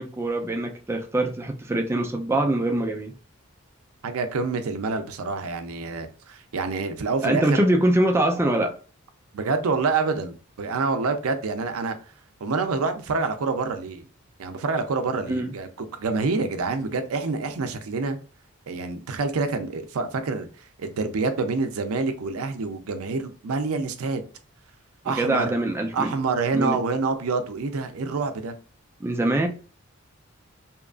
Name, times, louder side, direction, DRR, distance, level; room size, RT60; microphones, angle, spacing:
voice 1, 0.0-3.1 7.2-8.8 15.2-15.5 25.1-26.1 26.5-26.8 29.0-29.5, right 1 dB, 10° right, 0.3 m, -23 dB
voice 2, 4.0-7.6 9.3-12.0 12.4-14.1 14.4-18.2 18.7-24.2 25.0-25.6 25.9-28.6, right 4 dB, 80° right, 0.5 m, -27 dB
2.8 x 2.3 x 2.4 m
head